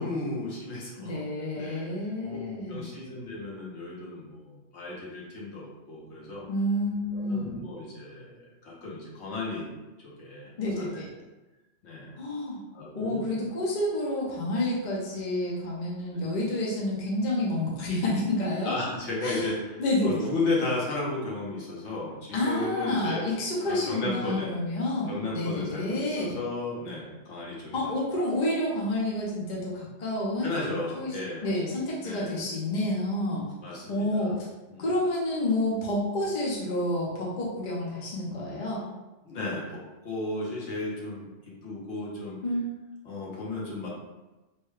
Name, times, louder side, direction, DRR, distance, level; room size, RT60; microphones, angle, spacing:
voice 1, 0.0-1.2 1.5-1.9 2.3-2.4 2.7-6.5 7.1-9.7 10.0-11.0 11.8-12.1 12.7-13.2 16.1-16.2 18.6-19.6 20.0-23.3 23.6-24.5 25.1-27.8 30.4-31.5 32.0-32.4 33.6-34.3 34.7-34.9 39.2-42.4 43.0-43.9, left 2 dB, 70° left, -5 dB, 1.1 m, -34 dB
voice 2, 1.0-2.9 6.5-7.7 10.6-11.1 12.2-12.6 12.9-18.7 19.2-19.5 19.8-20.3 22.3-26.4 27.7-30.6 31.0-33.4 33.9-34.5 34.8-38.8 42.4-42.6, left 1 dB, 50° left, -5 dB, 0.7 m, -29 dB
3.2 x 2.2 x 3.1 m, 1.1 s
omnidirectional pair, 1.2 m